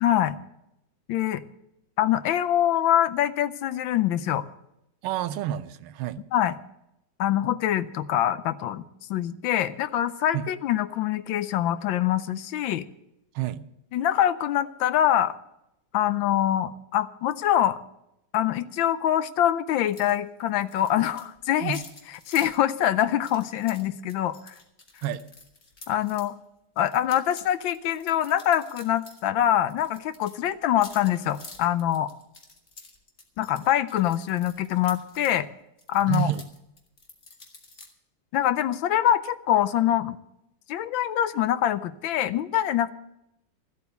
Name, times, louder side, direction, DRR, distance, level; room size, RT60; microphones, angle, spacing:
voice 1, 0.0-0.4 1.1-1.4 2.0-4.5 6.3-6.5 7.2-8.8 9.1-12.8 13.9-15.4 15.9-17.8 18.3-21.8 22.3-24.5 25.9-26.3 26.8-32.1 33.4-35.5 35.9-36.3 38.3-40.2 40.7-42.9, left 11 dB, 75° left, 13 dB, 1.3 m, -24 dB
voice 2, 5.0-6.2 10.3-10.4 13.3-13.6 21.6-21.8 25.0-25.2 36.1-36.4, right 11 dB, 90° right, 13 dB, 1.6 m, -29 dB
sound 1, 19.9-20.1 20.4-26.3 26.8-29.2 29.5-35.4 35.8-37.9, left 3 dB, 35° left, 2.0 m, -48 dB
14.0 x 8.2 x 8.1 m, 0.84 s
omnidirectional pair, 2.3 m